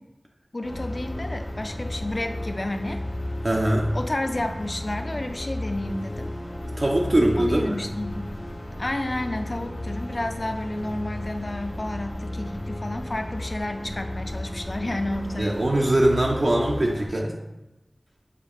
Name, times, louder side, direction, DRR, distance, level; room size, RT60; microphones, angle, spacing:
voice 1, 0.5-3.0 3.9-6.3 7.4-8.3 8.8-15.6, left 1 dB, 45° left, 7 dB, 0.4 m, -31 dB
sound 1, 0.6-17.1, left 1 dB, 70° left, 1.1 m, -34 dB
voice 2, 3.4-3.9 6.6-7.8 15.4-17.4, right 1 dB, 60° right, -1 dB, 0.5 m, -22 dB
6.6 x 2.4 x 2.9 m, 0.96 s
wide cardioid pair, 60°, 0 cm